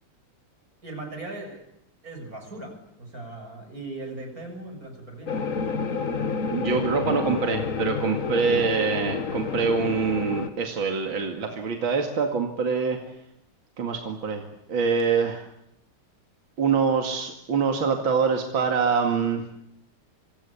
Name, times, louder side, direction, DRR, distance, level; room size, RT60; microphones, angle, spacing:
voice 1, 0.8-1.6 2.0-5.4, right 2 dB, 40° right, 5 dB, 7.3 m, -38 dB
sound 1, 5.3-10.5, left 5 dB, 40° left, 1.6 m, -29 dB
voice 2, 6.5-13.0 13.8-14.4 14.7-15.4 16.6-19.4, right 5 dB, 65° right, 3 dB, 2.9 m, -25 dB
26.0 x 25.0 x 8.6 m, 0.81 s
omnidirectional pair, 2.3 m